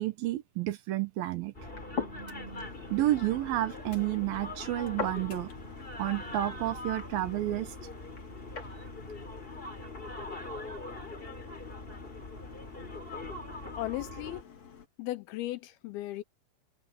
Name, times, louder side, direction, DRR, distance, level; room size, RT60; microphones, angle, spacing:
voice 1, 0.0-1.5 2.9-5.5 6.0-7.7, right 15 dB, 70° right, 2.5 m, -30 dB
sound 1, 1.5-14.4, left 2 dB, 15° left, 3.0 m, -42 dB
sound 2, 1.6-8.8, left 6 dB, 30° left, 3.1 m, -43 dB
sound 3, 2.2-14.9, left 7 dB, 45° left, 2.9 m, -53 dB
voice 2, 13.8-14.4 15.0-16.2, left 16 dB, 80° left, 2.4 m, -36 dB
omnidirectional pair, 4.8 m